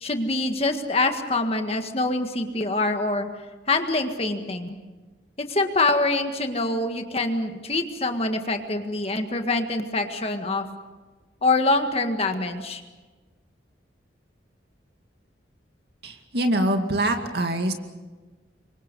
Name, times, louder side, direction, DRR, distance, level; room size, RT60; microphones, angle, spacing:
voice 1, 0.0-3.3 3.7-4.8 5.4-10.7 11.4-12.8, left 2 dB, 35° left, 6 dB, 1.8 m, -25 dB
voice 2, 16.0-17.7, right 1 dB, 60° right, 5 dB, 2.3 m, -24 dB
28.0 x 24.0 x 5.5 m, 1.3 s
head